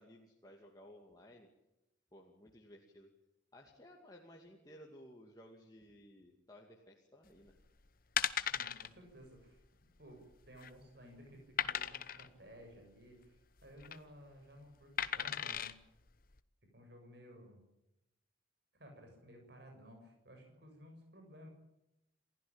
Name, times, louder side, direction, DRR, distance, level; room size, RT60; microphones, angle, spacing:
voice 1, 0.0-1.5 2.1-3.1 3.5-7.5, equal, 20° left, -1 dB, 2.5 m, -57 dB
sound 1, 7.5-7.7 8.2-8.9 9.2-9.4 9.6-9.7 10.3-10.8 11.6-12.3 13.6-14.0 15.0-15.7 16.3-16.4, left 9 dB, 45° left, 1.0 m, -36 dB
voice 2, 8.5-15.8 16.7-17.6 18.7-21.5, equal, 55° right, 3 dB, 7.4 m, -56 dB
28.0 x 16.0 x 8.9 m, 0.91 s
head